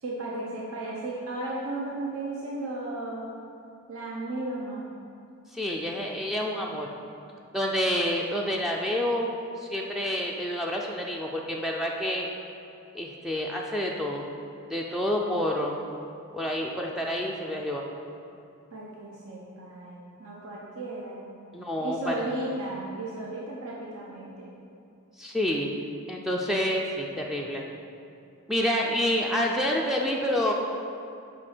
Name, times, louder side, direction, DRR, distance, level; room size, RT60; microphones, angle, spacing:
voice 1, 0.0-3.3 3.9-4.8 18.7-21.2 21.8-24.5, right 2 dB, 65° right, -5 dB, 1.0 m, -35 dB
voice 2, 5.5-6.9 7.5-9.3 9.6-12.3 12.9-14.2 14.7-15.8 16.3-17.8 21.5-22.3 25.2-25.7 26.1-27.6 28.5-30.5, equal, ahead, -1 dB, 0.4 m, -28 dB
6.2 x 5.2 x 6.0 m, 2.6 s
head